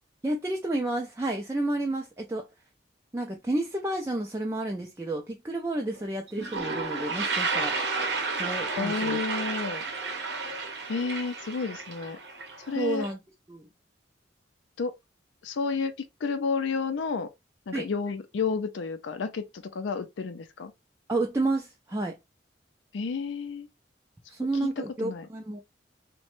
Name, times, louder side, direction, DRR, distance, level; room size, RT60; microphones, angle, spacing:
voice 1, 0.2-2.5 3.1-7.8 8.3-9.2 12.8-13.2 13.5-13.6 17.7-17.9 21.1-22.2 24.3-25.6, right 2 dB, 15° right, 0.4 m, -30 dB
Toilet flush, 6.0-6.1 6.3-13.1, right 4 dB, 65° right, 0.7 m, -32 dB
voice 2, 8.7-9.8 10.9-12.2 12.7-13.1 14.8-14.9 15.4-17.3 17.7-20.7 22.9-23.7 24.6-24.7 25.0-25.3, left 4 dB, 85° left, 0.4 m, -31 dB
2.9 x 2.1 x 3.0 m
head